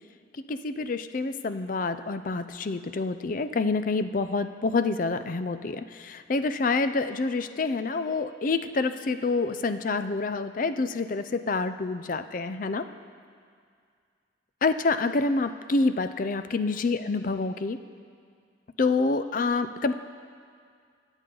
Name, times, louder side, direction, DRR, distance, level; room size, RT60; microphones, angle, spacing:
voice 1, 0.5-12.9 14.6-17.8 18.8-19.9, left 3 dB, 45° left, 11 dB, 0.5 m, -27 dB
21.5 x 8.1 x 3.9 m, 2.2 s
head